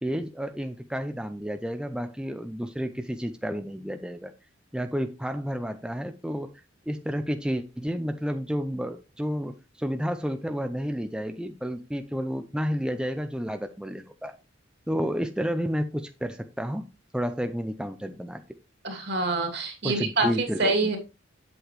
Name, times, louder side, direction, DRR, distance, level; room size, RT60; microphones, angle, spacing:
voice 1, 0.0-4.3 4.7-6.5 6.9-14.3 14.9-16.9 17.1-18.4 19.8-20.7, equal, 5° right, 7 dB, 0.5 m, -31 dB
voice 2, 18.8-21.0, right 3 dB, 60° right, 3 dB, 2.6 m, -26 dB
8.5 x 7.8 x 3.1 m, 0.28 s
head